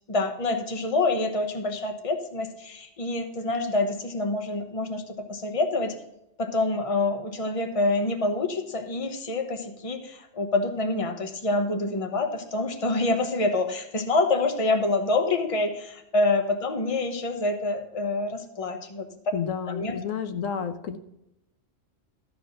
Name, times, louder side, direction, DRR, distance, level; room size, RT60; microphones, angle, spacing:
voice 1, 0.0-6.0 6.4-19.1 19.7-20.0, left 2 dB, 30° left, 6 dB, 1.1 m, -26 dB
voice 2, 19.3-21.0, left 7 dB, 85° left, 8 dB, 1.2 m, -30 dB
13.0 x 4.9 x 6.4 m, 0.84 s
omnidirectional pair, 1.3 m